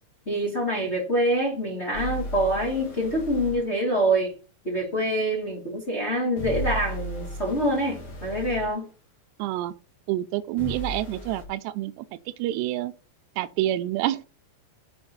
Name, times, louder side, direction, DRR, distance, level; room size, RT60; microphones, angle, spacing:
voice 1, 0.2-4.3 4.6-8.9, right 1 dB, 15° left, 2.9 m, -25 dB
sound 1, 1.9-3.6 6.4-8.7 10.6-11.4, equal, 35° left, 2.5 m, -35 dB
voice 2, 9.4-9.7 10.1-12.1 12.4-12.9 13.4-14.3, right 14 dB, 80° right, 2.7 m, -27 dB
6.7 x 6.2 x 7.1 m
omnidirectional pair, 5.1 m